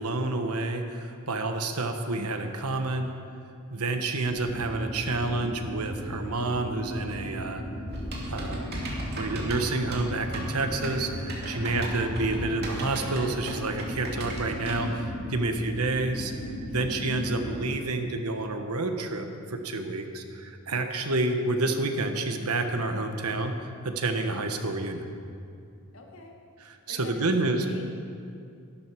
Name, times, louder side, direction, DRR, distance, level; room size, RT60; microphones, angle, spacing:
voice 1, 0.0-3.1 3.7-7.6 8.3-16.3 16.7-25.0 26.6-27.6, right 2 dB, 85° right, 6 dB, 1.3 m, -29 dB
sound 1, 4.3-17.6, equal, 25° left, 2.1 m, -37 dB
Typing, 7.9-15.0, right 1 dB, 45° right, 2.5 m, -36 dB
voice 2, 11.4-11.7 15.4-15.6 16.8-16.9 25.9-26.3 26.9-27.8, left 3 dB, 65° left, 1 dB, 2.0 m, -45 dB
13.5 x 12.0 x 6.1 m, 2.4 s
head